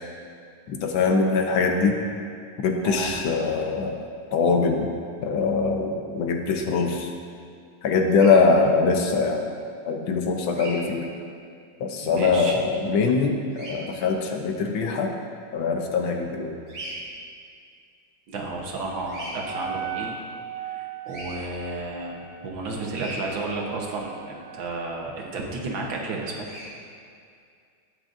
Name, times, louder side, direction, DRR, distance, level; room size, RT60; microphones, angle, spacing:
voice 1, 0.7-2.0 2.6-4.0 4.3-4.9 5.2-7.1 7.8-9.5 9.9-11.0 11.8-15.1 15.5-16.6, left 4 dB, 70° left, 3 dB, 1.5 m, -22 dB
Bird vocalization bird call bird song, 8.1-8.3 10.5-10.8 13.5-13.7 16.7-17.0 19.0-19.3 21.1-21.3 22.9-23.2 26.4-26.7, right 1 dB, 35° right, 2.9 m, -38 dB
voice 2, 12.0-12.6 18.3-20.2 20.6-26.5, right 3 dB, 70° right, 0 dB, 1.8 m, -32 dB
Wind instrument woodwind instrument, 19.3-25.1, right 7 dB, 85° left, 3.0 m, -38 dB
18.0 x 6.2 x 2.6 m, 2.3 s
omnidirectional pair, 2.3 m